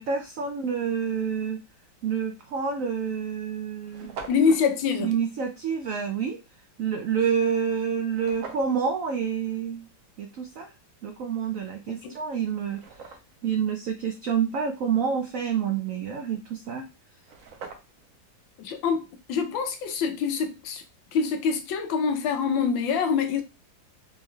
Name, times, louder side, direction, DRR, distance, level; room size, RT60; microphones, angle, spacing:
voice 1, 0.0-1.6 2.0-4.1 5.0-6.4 6.8-9.9 10.2-10.7 11.0-12.8 13.4-16.8, right 7 dB, 90° right, 0.7 m, -28 dB
sound 1, 2.3-2.5 3.2-3.3 3.5-3.6 3.8-4.7 8.1-8.8 11.7-11.8 12.3-13.5 16.8-16.9 17.1-18.1, right 5 dB, 60° right, 0.9 m, -43 dB
voice 2, 4.3-5.1 12.0-12.1 18.6-20.8 21.1-23.4, left 6 dB, 85° left, 1.4 m, -25 dB
4.5 x 3.2 x 2.3 m
omnidirectional pair, 2.0 m